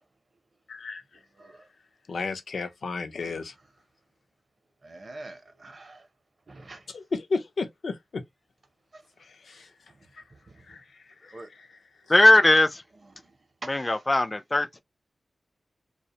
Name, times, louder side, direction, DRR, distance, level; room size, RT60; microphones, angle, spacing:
voice 1, 0.7-1.0 2.1-3.5 6.9-8.2 9.2-9.7 10.1-10.2 10.7-10.8 11.2-11.7, left 4 dB, 80° left, 0.5 m, -33 dB
voice 2, 4.8-6.1 6.5-6.8 8.9-9.0 10.5-10.8 11.3-11.5 13.7-13.9, right 2 dB, 50° right, 0.6 m, -46 dB
voice 3, 12.1-12.8 13.6-14.8, left 1 dB, 20° left, 0.3 m, -19 dB
2.4 x 2.1 x 2.7 m
wide cardioid pair, 95°, 0 cm